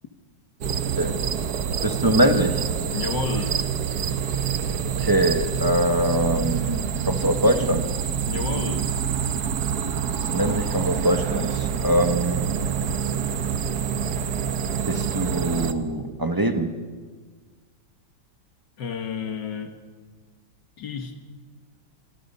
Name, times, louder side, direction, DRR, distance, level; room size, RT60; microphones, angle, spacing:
sound 1, 0.6-15.7, right 7 dB, 60° right, 1.5 m, -26 dB
voice 1, 1.8-2.6 5.0-7.9 10.3-12.5 14.9-16.8, right 1 dB, 15° right, 7 dB, 1.1 m, -23 dB
voice 2, 2.9-3.6 8.3-8.9 18.8-19.7 20.8-21.2, left 5 dB, 65° left, 6 dB, 1.9 m, -31 dB
27.0 x 24.5 x 5.5 m, 1.5 s
omnidirectional pair, 2.1 m